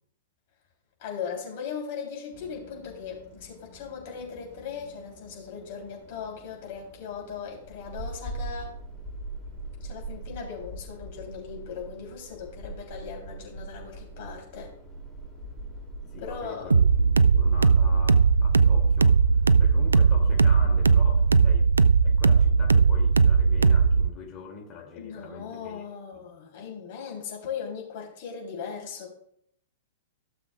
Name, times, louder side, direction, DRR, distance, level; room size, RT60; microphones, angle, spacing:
voice 1, 1.0-8.8 9.8-14.7 16.2-16.7 25.0-29.1, left 6 dB, 45° left, 0 dB, 3.4 m, -38 dB
sound 1, 2.3-21.5, right 1 dB, ahead, 2.8 m, -42 dB
voice 2, 16.1-19.2 19.6-21.7 22.0-25.8 26.1-26.2, left 5 dB, 25° left, 0 dB, 2.6 m, -43 dB
sound 2, 16.7-24.1, right 5 dB, 75° right, 0.3 m, -19 dB
16.0 x 6.9 x 2.4 m, 0.68 s
figure-of-eight pair, 105°, 0 cm